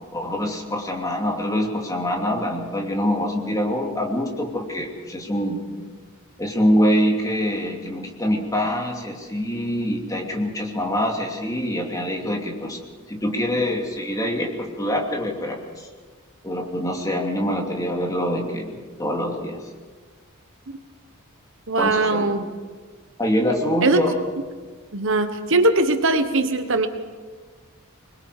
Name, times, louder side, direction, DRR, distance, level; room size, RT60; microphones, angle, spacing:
voice 1, 0.1-5.6 6.4-12.8 13.1-15.9 16.4-19.6 21.8-22.3 23.2-24.2, equal, 15° left, 1 dB, 2.7 m, -24 dB
voice 2, 21.7-22.4 23.8-24.0 24.9-26.9, right 2 dB, 65° right, 8 dB, 1.3 m, -20 dB
25.0 x 21.5 x 5.0 m, 1.5 s
head